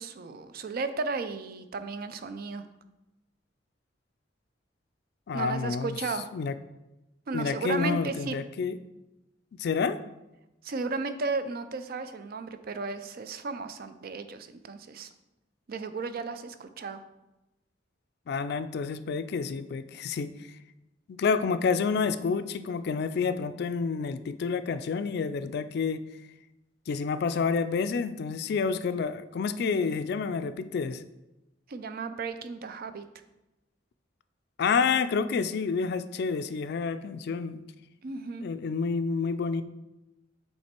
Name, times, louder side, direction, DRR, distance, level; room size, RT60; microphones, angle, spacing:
voice 1, 0.0-2.6 5.3-6.3 7.3-8.4 10.6-15.1 15.7-17.0 31.7-33.1 38.0-38.5, right 4 dB, 55° right, 10 dB, 0.4 m, -34 dB
voice 2, 5.3-6.0 6.3-6.5 7.3-8.8 9.6-10.0 18.3-20.5 21.1-26.0 26.9-31.0 34.6-37.6 38.4-39.6, left 5 dB, 60° left, 12 dB, 0.3 m, -29 dB
7.4 x 3.3 x 4.4 m, 0.98 s
head